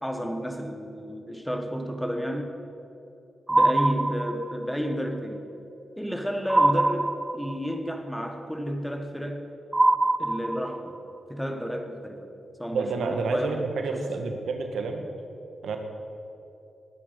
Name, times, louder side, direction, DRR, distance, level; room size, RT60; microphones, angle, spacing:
voice 1, 0.0-2.5 3.5-5.5 6.0-9.5 10.2-11.0 11.3-12.3 12.6-13.7 13.9-14.1, equal, 5° left, 5 dB, 1.3 m, -31 dB
sound 1, 3.5-4.7 6.5-7.7 9.7-11.0, right 2 dB, 20° right, 0.4 m, -23 dB
voice 2, 12.7-15.1 15.6-15.8, right 4 dB, 85° right, 5 dB, 1.5 m, -29 dB
20.0 x 9.6 x 5.2 m, 2.8 s
wide cardioid pair, 105°, 0 cm